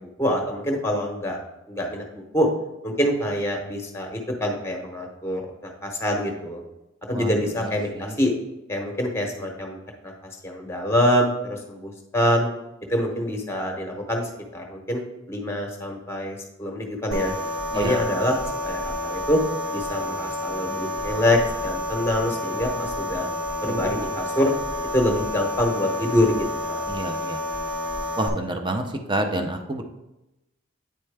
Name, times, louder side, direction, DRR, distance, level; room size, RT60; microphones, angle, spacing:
voice 1, 0.0-1.4 1.7-2.5 2.8-6.6 7.1-8.3 8.7-9.8 10.0-10.1 10.4-12.5 12.9-15.0 15.3-17.3 17.7-19.4 19.7-23.2 23.6-24.5 24.9-26.8, left 1 dB, 15° left, 2 dB, 1.0 m, -25 dB
sound 1, 17.1-28.3, left 1 dB, 75° right, 1.1 m, -29 dB
voice 2, 23.7-24.1 26.9-27.4 28.2-28.8 29.1-29.8, right 2 dB, 25° right, 5 dB, 0.6 m, -28 dB
9.1 x 4.4 x 3.4 m, 0.94 s
head